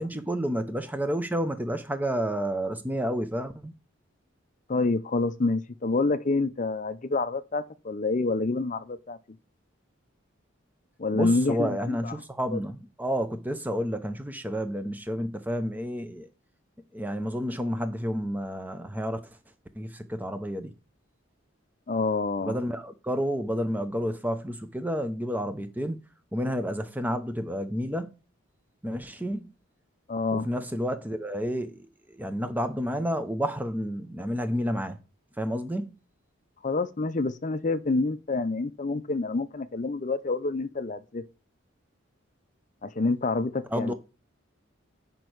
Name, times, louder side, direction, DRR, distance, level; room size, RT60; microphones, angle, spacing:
voice 1, 0.0-3.7 11.1-16.3 16.9-19.2 19.8-20.7 22.4-26.0 26.3-28.2 28.8-29.5 30.3-31.8 32.1-35.0 35.4-35.9 43.7-43.9, equal, 10° right, 0.7 m, -30 dB
voice 2, 4.7-9.2 11.0-12.2 12.5-12.6 21.9-22.6 30.1-30.5 36.6-41.2 42.8-43.9, left 3 dB, 35° left, 0.5 m, -27 dB
8.3 x 5.3 x 4.5 m
head